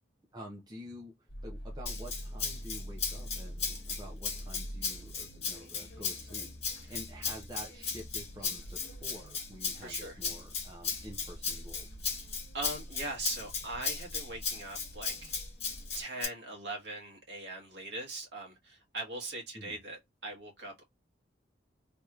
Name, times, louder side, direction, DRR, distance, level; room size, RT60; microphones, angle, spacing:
voice 1, 0.3-1.1 1.4-6.5 6.8-11.9 19.5-19.8, equal, 20° right, 0.7 m, -48 dB
sound 1, 1.3-16.0, equal, 50° left, 1.3 m, -46 dB
Rattle (instrument), 1.9-16.3, left 5 dB, 35° left, 1.5 m, -36 dB
voice 2, 9.8-10.2 12.5-15.3 15.9-20.8, right 2 dB, 65° right, 1.6 m, -41 dB
3.4 x 2.9 x 2.4 m
head